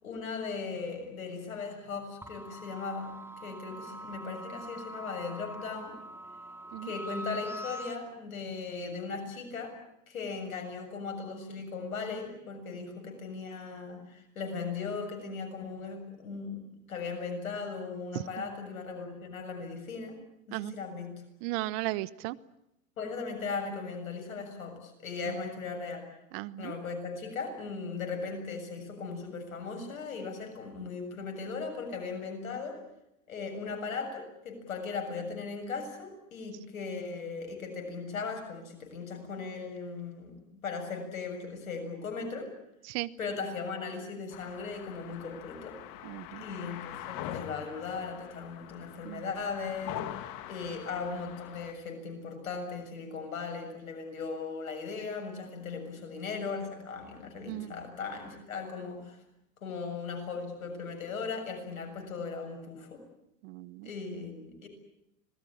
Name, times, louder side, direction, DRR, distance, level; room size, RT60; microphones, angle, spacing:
voice 1, 0.0-6.0 6.8-9.8 10.1-20.2 20.5-21.1 23.0-26.0 26.6-32.8 33.3-42.5 43.2-45.8 46.4-50.2 50.5-59.2 59.6-63.0 63.8-64.7, left 4 dB, 90° left, 4 dB, 7.1 m, -38 dB
sound 1, 2.2-8.0, equal, 5° right, 2.8 m, -43 dB
voice 2, 21.4-22.4 25.3-25.4 26.3-26.7 42.9-43.1 46.0-46.4 49.0-49.3 57.5-57.7 63.4-63.9, right 19 dB, 60° right, 19 dB, 1.2 m, -36 dB
sound 2, 44.3-51.7, left 12 dB, 55° left, 2.5 m, -43 dB
26.0 x 20.0 x 8.8 m, 0.83 s
hypercardioid pair, 90°, 40 cm